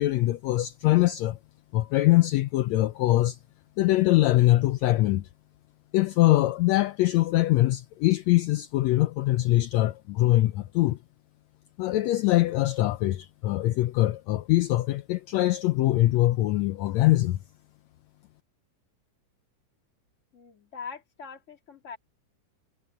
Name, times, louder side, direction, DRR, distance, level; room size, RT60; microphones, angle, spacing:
voice 1, 0.0-1.4 1.7-3.4 3.8-5.3 5.9-11.0 11.8-17.4, left 16 dB, 80° left, 1.6 m, -23 dB
voice 2, 20.3-22.0, left 5 dB, 25° left, 2.0 m, -42 dB
omnidirectional pair, 3.7 m